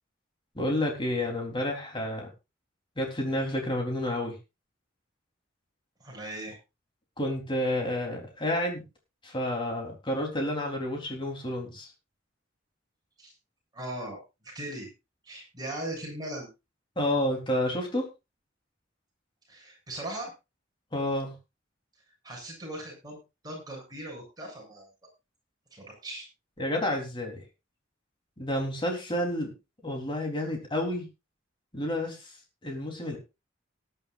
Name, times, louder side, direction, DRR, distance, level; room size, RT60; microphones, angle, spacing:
voice 1, 0.6-2.3 3.0-4.3 7.2-8.8 9.2-11.9 17.0-18.0 20.9-21.3 26.6-27.4 28.4-29.5 29.8-31.1 31.7-32.2 32.6-33.2, left 1 dB, 25° left, 1 dB, 3.8 m, -30 dB
voice 2, 6.0-6.6 13.2-13.3 13.7-14.9 15.2-16.5 19.5-20.3 22.2-24.9 25.7-26.3, right 1 dB, 20° right, -1 dB, 7.6 m, -39 dB
19.0 x 11.5 x 2.6 m, 0.27 s
head